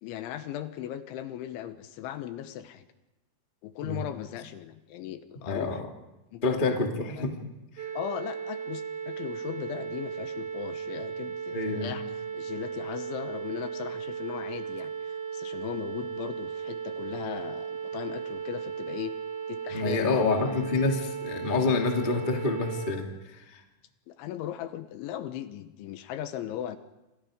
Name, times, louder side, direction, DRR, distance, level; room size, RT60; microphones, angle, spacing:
voice 1, 0.0-2.9 3.6-5.8 6.3-6.6 7.2-7.3 7.9-19.1 19.5-20.6 24.1-26.8, left 11 dB, 75° left, 10 dB, 3.3 m, -38 dB
voice 2, 5.5-5.8 6.4-7.3 7.8-7.9 11.5-11.9 19.7-23.6, left 3 dB, 35° left, 2 dB, 0.7 m, -28 dB
sound 1, 7.8-22.9, right 7 dB, 55° right, 3.8 m, -36 dB
28.5 x 25.0 x 5.1 m, 1.0 s
omnidirectional pair, 5.8 m